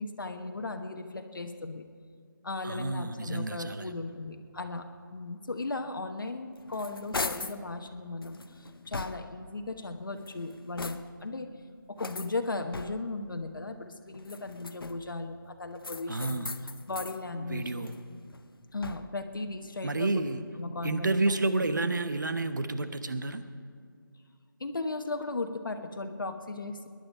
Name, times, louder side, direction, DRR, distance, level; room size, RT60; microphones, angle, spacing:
voice 1, 0.0-1.9 2.4-11.5 11.9-16.5 16.9-17.9 18.7-20.2 20.6-21.1 24.6-26.9, left 3 dB, 65° left, 6 dB, 1.2 m, -36 dB
voice 2, 2.6-3.9 16.1-16.5 17.3-17.9 19.8-20.4 20.8-23.4, right 2 dB, 55° right, 10 dB, 1.1 m, -30 dB
sound 1, 6.3-7.7 8.2-9.5 10.1-11.3 12.0-13.2 14.1-15.2 15.8-17.2 17.6-19.3, left 3 dB, 85° left, 0.8 m, -40 dB
22.0 x 11.0 x 5.5 m, 2.1 s
figure-of-eight pair, 170°, 12 cm